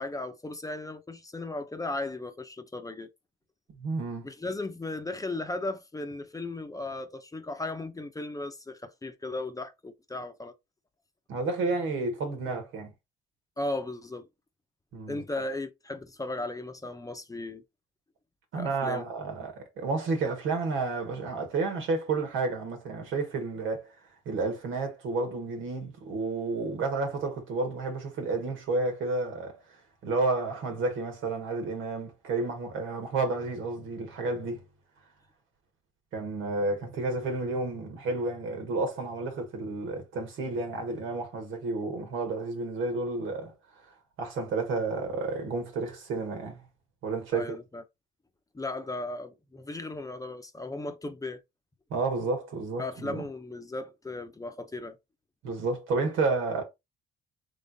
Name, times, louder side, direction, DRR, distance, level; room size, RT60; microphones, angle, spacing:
voice 1, 0.0-3.1 4.2-10.5 13.6-14.3 15.1-17.6 18.6-19.0 47.3-47.8 48.5-51.4 52.8-55.0, left 2 dB, 15° left, 0.7 m, -36 dB
voice 2, 3.8-4.3 11.3-12.9 14.9-15.2 18.5-23.9 24.2-34.6 36.1-43.5 44.2-46.6 47.0-47.6 51.9-53.2 55.4-56.6, right 3 dB, 85° right, 1.7 m, -31 dB
3.6 x 3.3 x 3.9 m
cardioid pair, 90°, 20 cm